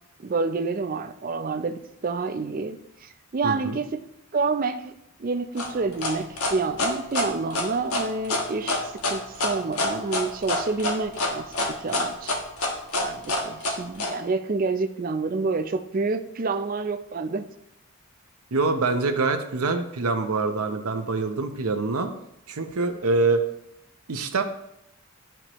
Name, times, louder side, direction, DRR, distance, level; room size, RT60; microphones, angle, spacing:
voice 1, 0.2-4.0 4.3-4.9 5.2-12.4 13.0-17.5, right 4 dB, 40° right, 8 dB, 0.4 m, -28 dB
voice 2, 3.4-3.8 18.5-22.1 22.5-23.4 24.1-24.4, right 3 dB, 85° right, 6 dB, 0.7 m, -25 dB
sound 1, 5.6-14.1, left 2 dB, 85° left, 1.3 m, -26 dB
11.0 x 4.5 x 3.0 m, 0.78 s
head